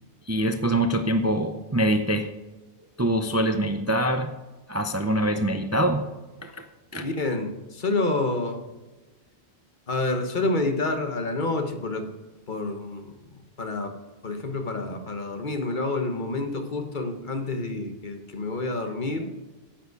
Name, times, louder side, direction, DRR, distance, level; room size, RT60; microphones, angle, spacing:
voice 1, 0.3-2.3 3.0-4.3 4.7-6.1 6.4-6.6 6.9-7.1, right 1 dB, 20° right, 7 dB, 0.5 m, -24 dB
voice 2, 7.0-8.6 9.9-12.1 12.5-14.0 14.2-19.3, left 2 dB, 45° left, 6 dB, 1.2 m, -28 dB
10.0 x 9.0 x 4.7 m, 1.2 s
omnidirectional pair, 1.1 m